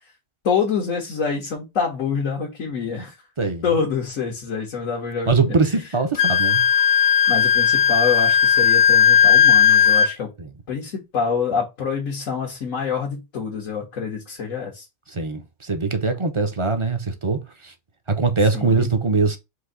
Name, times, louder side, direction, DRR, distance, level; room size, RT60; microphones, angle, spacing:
voice 1, 0.4-3.2 3.6-5.6 7.3-10.3 10.7-14.9 18.5-18.9, left 5 dB, 85° left, 1.7 m, -26 dB
voice 2, 5.3-6.6 10.4-10.5 15.1-17.7 18.1-19.4, right 4 dB, 30° right, 0.6 m, -22 dB
Wind instrument woodwind instrument, 6.1-10.1, left 8 dB, 55° left, 0.8 m, -16 dB
4.8 x 2.7 x 3.8 m
omnidirectional pair, 1.3 m